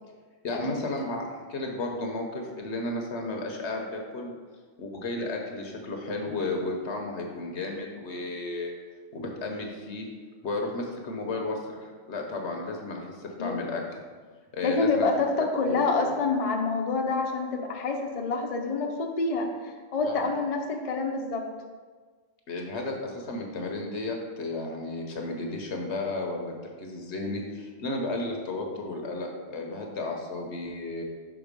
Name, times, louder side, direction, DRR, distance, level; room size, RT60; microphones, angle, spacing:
voice 1, 0.4-4.3 4.8-8.7 9.1-10.1 10.4-13.8 14.5-15.1 15.6-16.1 20.0-20.3 22.5-31.0, left 2 dB, 80° left, 1 dB, 1.2 m, -33 dB
voice 2, 14.6-21.4, left 3 dB, 40° left, 2 dB, 0.6 m, -27 dB
6.1 x 3.8 x 5.2 m, 1.5 s
omnidirectional pair, 1.1 m